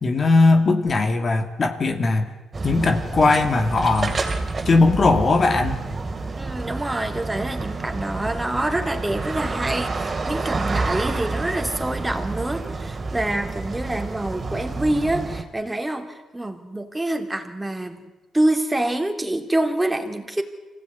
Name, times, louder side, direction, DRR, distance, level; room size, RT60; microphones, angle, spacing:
voice 1, 0.0-2.3 2.6-4.2 4.7-5.9, left 3 dB, 40° left, 6 dB, 2.5 m, -19 dB
sound 1, 2.5-15.4, right 3 dB, 30° right, 3.2 m, -29 dB
voice 2, 6.4-18.1 18.3-20.4, right 1 dB, 10° right, 5 dB, 3.1 m, -26 dB
25.5 x 16.5 x 9.6 m, 1.2 s
cardioid pair, 90°, 0 cm